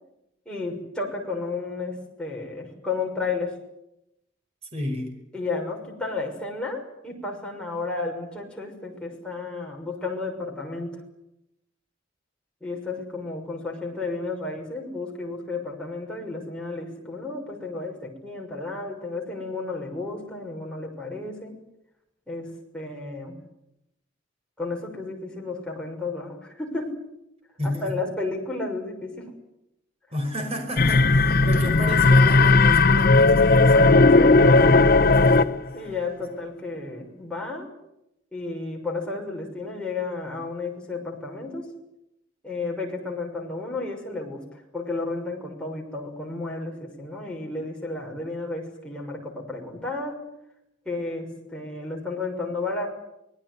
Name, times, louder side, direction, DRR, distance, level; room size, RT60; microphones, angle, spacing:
voice 1, 0.5-3.5 5.3-11.0 12.6-21.5 22.3-23.3 24.6-27.0 27.6-29.3 33.5-34.9 35.7-37.7 38.3-41.7 42.4-44.4 44.7-50.2 50.8-52.9, left 3 dB, 5° left, -1 dB, 6.3 m, -32 dB
voice 2, 4.7-5.1 27.6-27.9 30.1-33.9 35.1-35.5 36.2-36.3, left 1 dB, 35° right, 4 dB, 5.1 m, -31 dB
sound 1, 30.8-35.7, left 3 dB, 50° left, 0.9 m, -16 dB
25.5 x 19.0 x 9.6 m, 0.85 s
head